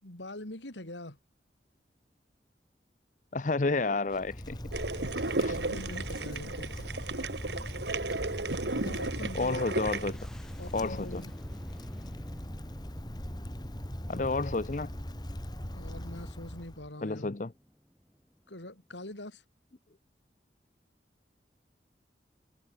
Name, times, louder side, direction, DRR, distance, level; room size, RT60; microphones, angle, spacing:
voice 1, 0.0-1.2 5.6-6.7 8.8-9.6 10.6-11.3 15.6-17.3 18.5-19.4, left 1 dB, 90° left, 4.0 m, -43 dB
voice 2, 3.3-4.6 5.4-5.6 9.3-10.2 10.7-11.2 14.1-14.9 17.0-17.5, left 3 dB, 45° left, 0.7 m, -30 dB
Wind, 4.1-16.9, equal, 25° left, 2.9 m, -40 dB
sound 1, 4.7-10.1, right 2 dB, 75° right, 1.8 m, -34 dB
sound 2, 9.9-19.1, equal, 5° left, 5.5 m, -55 dB
head